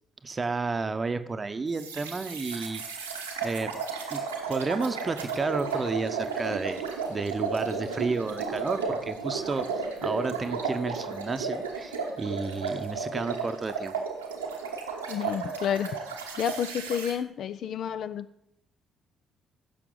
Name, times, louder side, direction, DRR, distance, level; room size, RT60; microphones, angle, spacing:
voice 1, 0.2-2.8 3.4-3.8 4.1-4.2 4.5-6.8 7.1-9.7 10.0-13.9, right 4 dB, 30° right, 10 dB, 0.8 m, -31 dB
sound 1, 1.7-17.1, right 5 dB, 85° right, 1.1 m, -34 dB
voice 2, 15.1-16.0 16.4-18.3, left 9 dB, 55° left, 13 dB, 0.5 m, -30 dB
15.5 x 6.8 x 3.9 m, 0.76 s
figure-of-eight pair, 45°, 0 cm